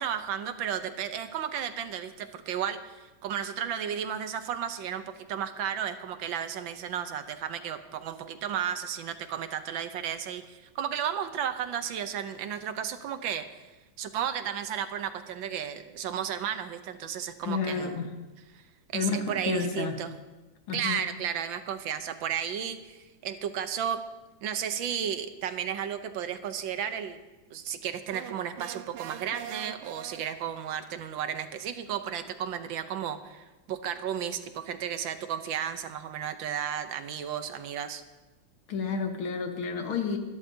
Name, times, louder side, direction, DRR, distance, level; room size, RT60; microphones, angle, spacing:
voice 1, 0.0-13.4 14.0-18.0 18.5-18.6 18.9-20.1 20.7-24.0 24.4-27.2 27.5-38.0, right 9 dB, 70° right, 10 dB, 1.4 m, -33 dB
voice 2, 17.4-18.1 18.9-19.9 20.7-21.0 38.7-40.2, left 5 dB, 75° left, 5 dB, 2.1 m, -30 dB
sound 1, 28.1-30.7, right 11 dB, 90° right, 1.5 m, -43 dB
23.0 x 12.0 x 2.7 m, 1.1 s
omnidirectional pair, 2.3 m